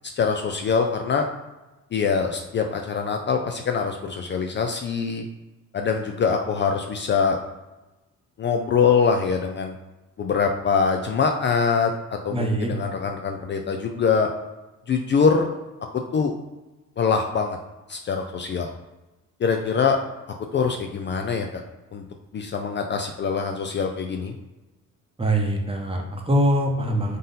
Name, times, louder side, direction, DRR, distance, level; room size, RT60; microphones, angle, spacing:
voice 1, 0.2-1.3 1.9-5.2 5.7-7.4 8.4-9.7 10.2-14.3 14.9-15.6 16.1-16.3 17.0-17.6 17.9-18.7 19.4-20.0 20.5-21.6 21.9-22.0 22.3-24.3, left 5 dB, 40° left, 4 dB, 0.4 m, -23 dB
voice 2, 12.3-12.7 25.2-27.2, right 1 dB, 20° right, 1 dB, 0.8 m, -23 dB
3.9 x 2.5 x 4.0 m, 1.1 s
cardioid pair, 90°, 30 cm